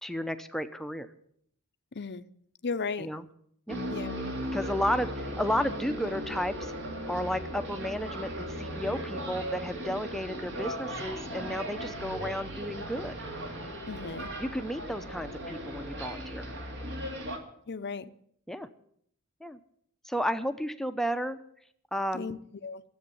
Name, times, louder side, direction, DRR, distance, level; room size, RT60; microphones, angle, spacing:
voice 1, 0.0-1.1 3.0-3.3 3.7-3.8 4.5-6.7 7.1-13.2 14.4-16.4 18.5-18.7 19.4-19.6 20.0-21.4 21.9-22.4, equal, ahead, 0.8 m, -33 dB
voice 2, 1.9-2.3 2.6-3.1 3.9-4.2 13.9-14.3 17.7-18.1 22.1-22.8, left 4 dB, 50° left, 0.7 m, -35 dB
sound 1, 3.7-17.4, equal, 55° right, 2.7 m, -37 dB
14.0 x 8.0 x 9.9 m
head